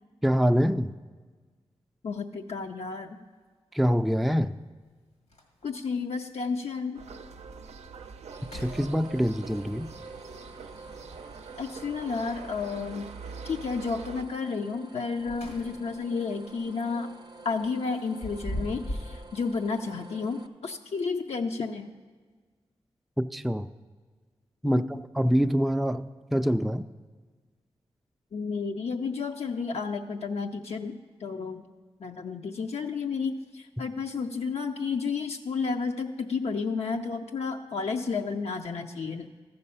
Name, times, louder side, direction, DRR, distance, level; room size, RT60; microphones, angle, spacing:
voice 1, 0.2-0.9 3.7-4.6 8.5-9.9 23.2-23.7 24.6-26.9, equal, ahead, 9 dB, 0.3 m, -25 dB
voice 2, 2.0-3.2 5.6-7.0 11.6-13.1 13.4-17.1 17.4-21.9 24.6-24.9 28.3-31.6 32.0-39.4, left 4 dB, 70° left, 3 dB, 0.5 m, -32 dB
sound 1, 2.6-2.7 4.4-4.5 4.9-5.0 5.3-5.9 6.4-6.5 7.1-7.2 7.6-7.9 8.4-9.4 11.5-12.2 15.0-16.0 16.4-16.6 17.9-19.2, equal, 90° left, 1.7 m, -39 dB
sound 2, 6.9-14.2, right 5 dB, 90° right, 0.5 m, -44 dB
sound 3, 8.3-20.5, right 2 dB, 40° right, 0.6 m, -49 dB
14.0 x 5.4 x 5.5 m, 1.4 s
cardioid pair, 40°, 11 cm